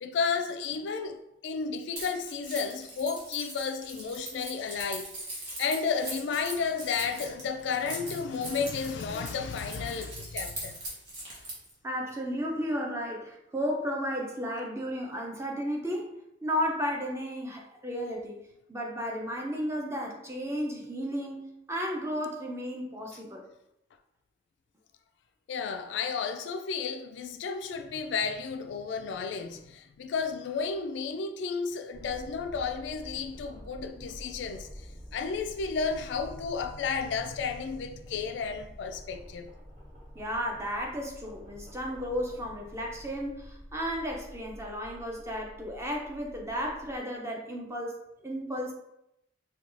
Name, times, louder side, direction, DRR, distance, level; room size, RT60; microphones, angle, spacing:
voice 1, 0.0-5.1 5.6-10.8 25.5-39.5, left 5 dB, 70° left, 0.3 m, -32 dB
Keys jangling, 2.0-11.7, right 1 dB, 60° right, 1.2 m, -40 dB
voice 2, 11.8-16.1 16.4-18.4 18.7-23.5 40.1-48.7, equal, 15° right, 0.5 m, -33 dB
sound 1, 31.9-47.0, equal, 40° right, 0.8 m, -48 dB
4.5 x 2.3 x 2.5 m
head